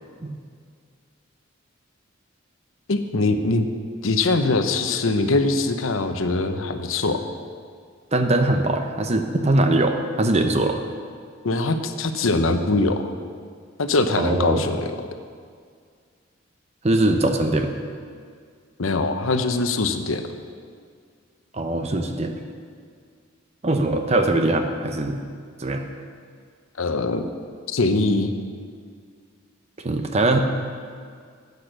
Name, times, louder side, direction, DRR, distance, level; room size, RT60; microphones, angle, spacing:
voice 1, 2.9-3.7 4.0-7.2 11.4-13.1 13.8-14.9 18.8-20.2 26.8-27.3 27.7-28.3, left 3 dB, 85° left, 8 dB, 0.8 m, -22 dB
voice 2, 8.1-10.8 14.2-14.7 16.8-17.8 21.5-22.4 23.6-25.2 25.6-25.8 29.8-30.4, right 2 dB, 30° right, 5 dB, 0.8 m, -21 dB
10.5 x 8.4 x 6.5 m, 2.1 s
head